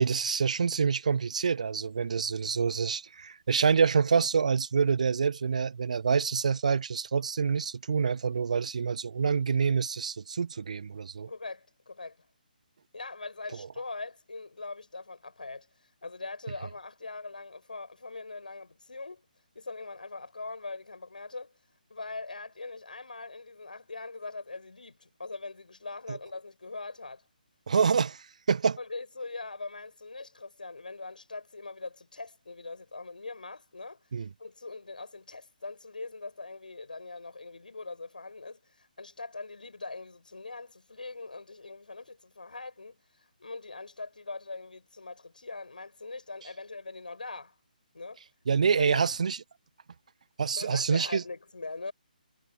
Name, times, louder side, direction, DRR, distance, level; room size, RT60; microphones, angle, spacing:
voice 1, 0.0-11.3 26.1-26.2 27.7-28.8 34.1-34.3 48.5-49.4 50.4-51.2, right 6 dB, 50° right, 1.0 m, -27 dB
voice 2, 11.3-12.2 12.9-15.7 16.0-19.2 19.5-21.5 21.9-27.2 28.8-34.0 34.4-47.6 47.9-48.2 48.8-49.1 50.5-51.9, left 3 dB, 65° left, 7.3 m, -41 dB
figure-of-eight pair, 140°, 5 cm